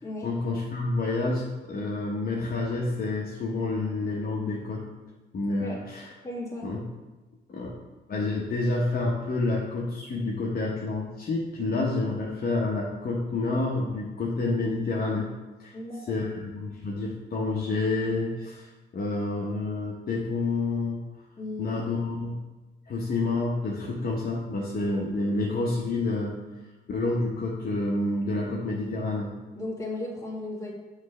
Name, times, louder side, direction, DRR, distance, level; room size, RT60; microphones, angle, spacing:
voice 1, 0.2-4.8 5.3-6.1 6.6-6.8 7.5-7.7 8.1-15.3 15.6-15.8 16.1-18.7 18.9-21.0 21.6-22.4 22.9-26.4 26.9-29.3, left 2 dB, 50° left, -3 dB, 1.0 m, -28 dB
voice 2, 6.2-6.7 15.7-16.3 21.4-21.8 29.6-30.7, left 1 dB, 15° left, -5 dB, 2.1 m, -35 dB
5.9 x 3.3 x 5.4 m, 1.2 s
cardioid pair, 90°, 20 cm